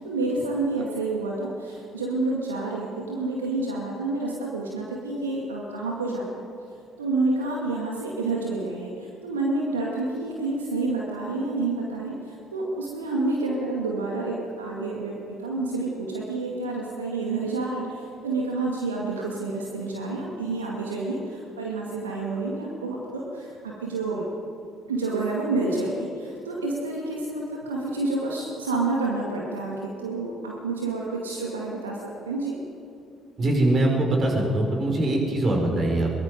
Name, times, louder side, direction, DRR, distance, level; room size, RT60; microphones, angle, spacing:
voice 1, 0.0-6.3 7.0-24.2 24.9-32.0 32.3-32.6 35.1-35.2, right 3 dB, 85° right, -2 dB, 2.1 m, -29 dB
voice 2, 33.4-36.1, right 1 dB, 45° right, 1 dB, 5.6 m, -22 dB
22.5 x 21.5 x 5.3 m, 2.5 s
figure-of-eight pair, 50°, 0 cm